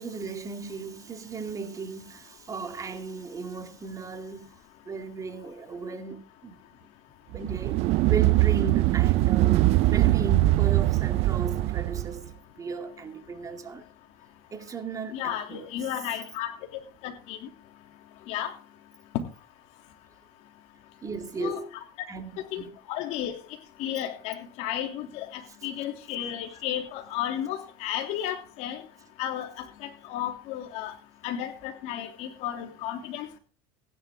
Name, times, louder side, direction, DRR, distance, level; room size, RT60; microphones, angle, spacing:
voice 1, 0.0-4.6 4.8-6.6 7.3-13.8 14.5-15.7 21.0-21.8 22.1-22.7, right 4 dB, 25° right, 2.4 m, -36 dB
sound 1, 7.3-12.2, right 18 dB, 60° right, 0.5 m, -22 dB
voice 2, 15.1-16.5 17.0-17.4 18.3-18.5 21.4-21.6 22.5-22.6 22.9-23.4 23.8-28.8 29.2-30.9 31.2-33.4, left 11 dB, 65° left, 3.1 m, -33 dB
16.0 x 10.5 x 3.8 m
hypercardioid pair, 90°, 12 cm